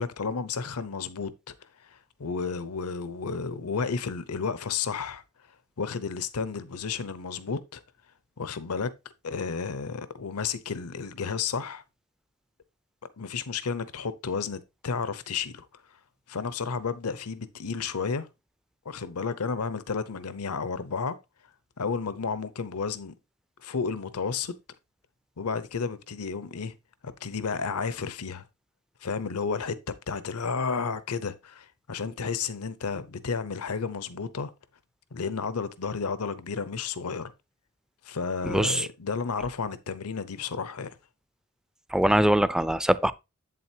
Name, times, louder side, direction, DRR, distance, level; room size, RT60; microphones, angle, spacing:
voice 1, 0.0-1.5 1.8-5.2 5.8-7.8 8.4-8.9 9.2-11.8 13.2-15.8 16.3-18.3 18.8-21.2 21.8-23.1 23.6-24.5 25.4-26.7 27.0-28.5 29.0-29.8 30.1-34.5 35.1-37.3 38.0-41.0, left 5 dB, 80° left, 0.8 m, -32 dB
voice 2, 38.4-38.9 41.9-43.1, right 1 dB, 5° right, 0.3 m, -22 dB
8.1 x 7.7 x 2.8 m
head